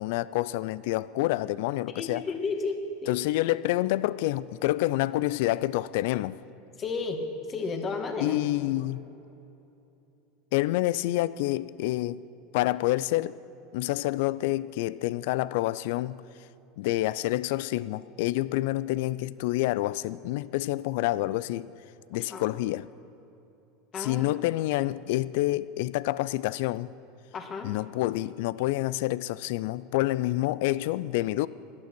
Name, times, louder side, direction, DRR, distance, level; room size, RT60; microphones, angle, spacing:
voice 1, 0.0-2.2 3.1-6.4 8.2-9.0 10.5-12.2 12.5-13.4 13.7-16.2 16.8-21.7 22.1-22.9 24.0-26.9 27.6-31.5, left 17 dB, 65° left, 0.4 m, -28 dB
voice 2, 1.9-3.2 6.8-7.2 7.5-8.4 22.3-22.4 23.9-24.3 27.3-27.8, left 4 dB, 35° left, 1.9 m, -32 dB
17.0 x 12.0 x 6.1 m
hypercardioid pair, 85°, 0 cm